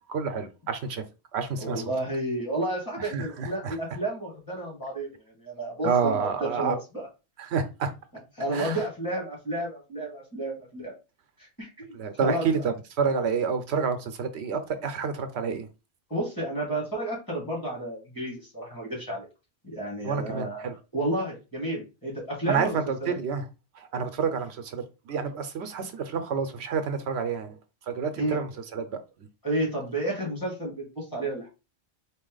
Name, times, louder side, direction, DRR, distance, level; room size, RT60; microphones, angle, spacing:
voice 1, 0.1-1.1 1.3-1.8 3.0-3.8 5.8-6.8 7.4-7.9 8.5-8.8 11.9-15.7 20.0-20.7 22.5-23.4 23.7-27.6 27.9-29.0, right 5 dB, 75° right, 0.9 m, -29 dB
voice 2, 1.6-7.1 8.4-10.9 11.4-12.6 16.1-19.3 19.6-23.1 28.2-28.4 29.4-31.5, right 1 dB, 20° left, 2.1 m, -31 dB
4.1 x 2.8 x 3.8 m
omnidirectional pair, 1.1 m